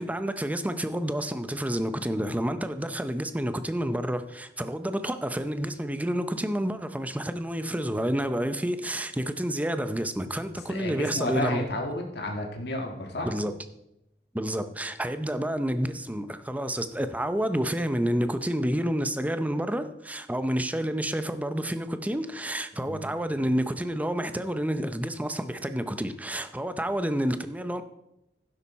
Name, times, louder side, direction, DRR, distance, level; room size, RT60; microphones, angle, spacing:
voice 1, 0.0-11.6 13.3-13.5 14.3-27.8, equal, 10° right, 0.7 m, -29 dB
voice 2, 10.7-13.3 22.9-23.1, left 1 dB, 65° left, 1.7 m, -32 dB
11.5 x 10.0 x 4.2 m
head